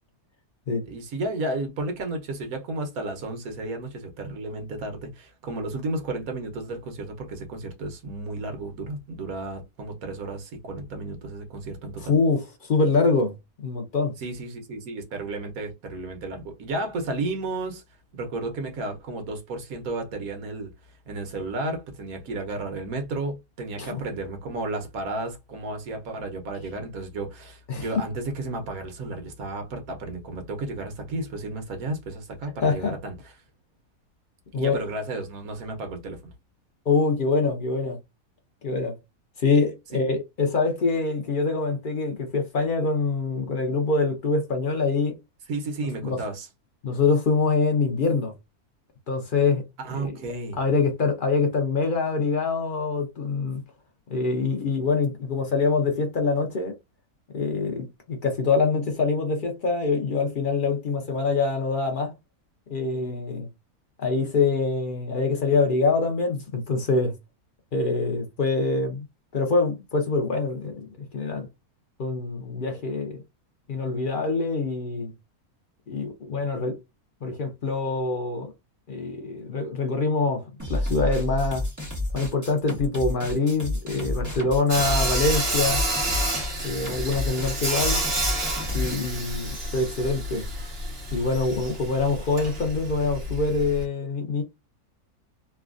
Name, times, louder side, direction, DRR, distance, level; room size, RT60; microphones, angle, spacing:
voice 1, 0.8-12.1 14.2-17.8 18.1-20.7 21.1-33.1 34.5-36.3 45.5-46.5 49.8-50.6, right 2 dB, 70° right, 1.3 m, -33 dB
voice 2, 12.0-13.3 13.6-14.2 23.8-24.0 27.7-27.9 32.6-32.9 34.5-34.8 36.9-38.0 38.6-39.0 39.4-45.2 46.0-46.2 46.8-48.3 49.1-49.6 49.9-50.2 50.6-53.6 54.1-56.7 57.3-62.1 62.7-63.5 64.0-67.1 67.7-69.0 69.3-71.5 72.0-73.2 73.7-75.1 75.9-76.8 77.2-78.5 78.9-80.4 80.7-81.6 82.1-85.8 86.6-88.0 88.7-90.5 91.1-94.4, left 4 dB, 60° left, 0.5 m, -25 dB
sound 1, 80.6-88.9, left 1 dB, 15° right, 0.9 m, -30 dB
Sawing, 84.7-93.8, right 1 dB, 45° right, 1.2 m, -29 dB
3.1 x 2.2 x 2.4 m
omnidirectional pair, 1.6 m